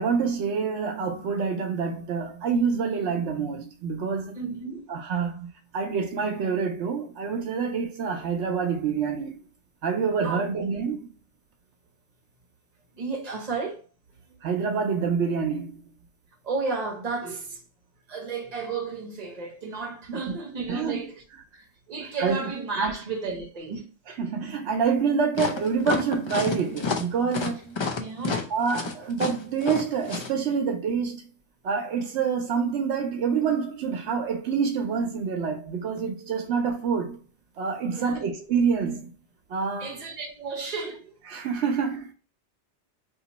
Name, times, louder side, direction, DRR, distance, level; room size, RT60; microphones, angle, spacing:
voice 1, 0.0-4.4 4.9-9.4 9.8-11.1 14.4-15.8 20.1-20.4 20.7-21.1 22.2-22.5 22.8-22.9 24.1-27.8 28.5-31.2 31.6-37.2 37.6-39.1 39.5-40.0 41.3-42.1, right 6 dB, 80° right, 0.9 m, -27 dB
voice 2, 4.4-4.9 10.2-10.4 13.0-13.9 16.4-17.6 18.1-21.1 21.5-23.8 28.0-28.4 37.9-38.2 39.8-41.1, right 4 dB, 40° right, 1.0 m, -33 dB
sound 1, 25.3-30.3, left 4 dB, 45° left, 0.4 m, -29 dB
2.9 x 2.7 x 4.0 m
omnidirectional pair, 1.2 m